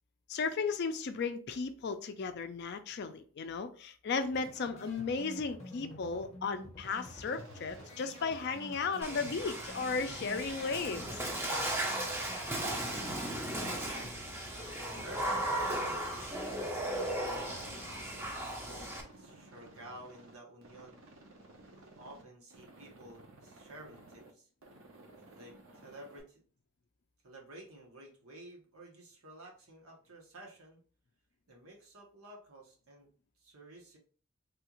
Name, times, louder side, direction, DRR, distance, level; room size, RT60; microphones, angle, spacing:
voice 1, 0.3-11.2, left 4 dB, 50° left, 0.4 m, -35 dB
sound 1, 4.3-19.7, left 1 dB, 30° left, 0.8 m, -50 dB
Aircraft, 6.8-18.3 18.6-20.3 20.6-22.2 22.5-24.3 24.6-26.2, right 2 dB, 65° right, 0.7 m, -56 dB
Water / Splash splatter, 9.0-19.0, right 1 dB, 10° right, 0.5 m, -36 dB
voice 2, 10.3-10.7 13.6-14.4 14.9-17.8 18.5-18.9 19.2-21.0 21.7-24.5 25.3-26.4 27.2-30.8 31.5-33.1 33.4-34.0, right 1 dB, 85° right, 1.1 m, -52 dB
3.4 x 2.4 x 2.9 m
head